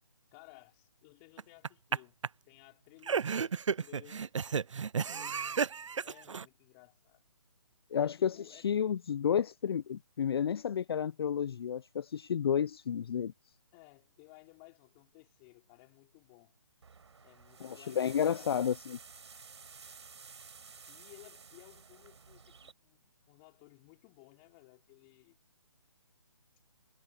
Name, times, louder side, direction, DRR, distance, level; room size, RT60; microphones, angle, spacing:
voice 1, 0.3-2.2 2.4-4.7 5.0-5.8 6.0-7.2 8.0-8.7 13.7-16.5 17.2-18.6 20.9-25.4, left 32 dB, 25° left, 4.3 m, -58 dB
sound 1, 1.4-2.0 2.2-2.3 3.0-6.4, right 6 dB, 85° right, 0.4 m, -32 dB
voice 2, 7.9-13.3 17.6-19.0, left 8 dB, 55° left, 0.4 m, -31 dB
sound 2, 16.8-22.7, right 5 dB, 65° right, 4.7 m, -53 dB
figure-of-eight pair, 150°, 16 cm